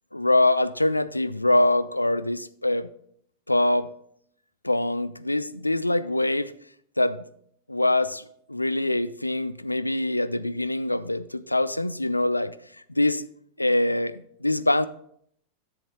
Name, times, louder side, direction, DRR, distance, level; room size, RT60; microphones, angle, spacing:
voice 1, 0.1-2.9 3.5-3.9 4.6-6.5 7.0-7.2 7.7-12.5 12.9-13.2 13.6-14.9, left 1 dB, 85° left, 13 dB, 0.4 m, -24 dB
10.5 x 3.6 x 5.4 m, 0.66 s
figure-of-eight pair, 90°, 0 cm